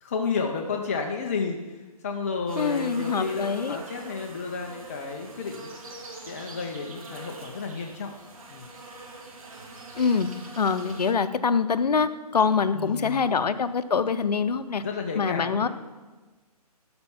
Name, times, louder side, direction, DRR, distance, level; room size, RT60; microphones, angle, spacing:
voice 1, 0.0-5.7 6.3-8.1 8.5-8.7 12.7-13.5 14.8-15.7, left 5 dB, 20° left, 2 dB, 0.4 m, -32 dB
sound 1, 2.5-11.1, right 2 dB, 60° right, 1.8 m, -43 dB
voice 2, 2.6-3.8 10.0-10.3 10.6-14.8 15.2-15.7, left 5 dB, 80° left, 12 dB, 0.6 m, -24 dB
12.0 x 4.4 x 5.6 m, 1.3 s
hypercardioid pair, 155°, 20 cm